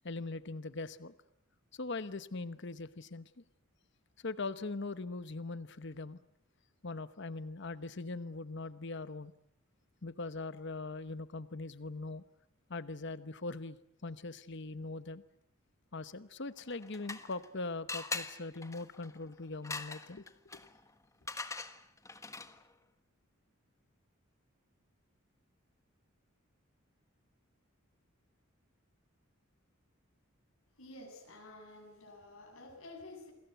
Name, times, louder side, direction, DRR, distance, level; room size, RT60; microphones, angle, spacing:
voice 1, 0.0-1.1 1.7-3.4 4.2-6.2 6.8-9.3 10.0-12.2 12.7-15.2 15.9-20.2 20.5-20.6, left 3 dB, 55° left, 13 dB, 1.0 m, -41 dB
sound 1, 16.6-17.5 17.9-22.7, left 3 dB, 15° left, 1.4 m, -43 dB
voice 2, 30.8-33.3, left 2 dB, 75° left, 1 dB, 7.5 m, -51 dB
29.0 x 22.0 x 8.1 m, 0.74 s
head